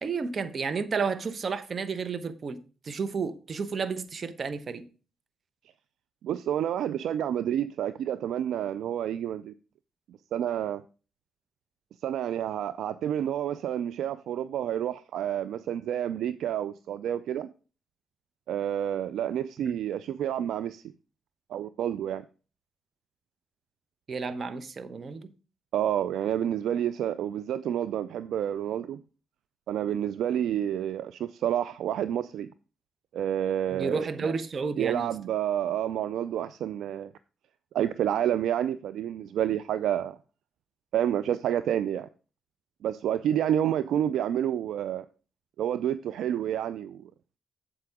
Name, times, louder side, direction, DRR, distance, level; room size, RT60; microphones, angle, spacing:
voice 1, 0.0-4.9 19.6-19.7 24.1-25.3 33.7-35.1, right 5 dB, 50° right, 1.0 m, -32 dB
voice 2, 6.2-9.5 10.3-10.8 12.0-17.5 18.5-20.8 21.5-22.2 25.7-29.0 29.7-32.5 33.1-34.1 34.8-37.1 37.7-40.2 40.9-42.1 42.8-45.0 45.6-47.0, right 10 dB, 70° right, 0.4 m, -29 dB
7.8 x 7.6 x 3.6 m
hypercardioid pair, 45°, 0 cm